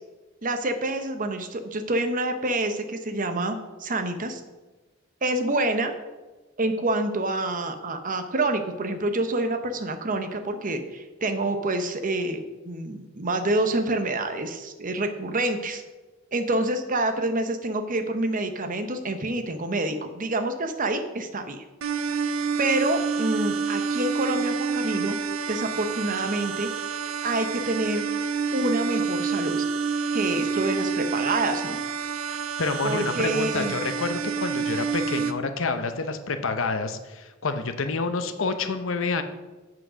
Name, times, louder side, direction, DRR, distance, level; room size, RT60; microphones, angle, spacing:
voice 1, 0.4-4.4 5.2-5.9 6.6-15.8 16.3-21.6 22.6-25.2 25.5-26.7 27.2-28.0 28.5-29.7 30.1-31.8 32.8-33.8, right 2 dB, 40° right, 7 dB, 0.9 m, -27 dB
sound 1, 21.8-35.3, right 5 dB, 90° right, 0.6 m, -28 dB
voice 2, 32.6-39.2, left 4 dB, 70° left, 9 dB, 0.8 m, -28 dB
7.6 x 6.3 x 6.2 m, 1.2 s
head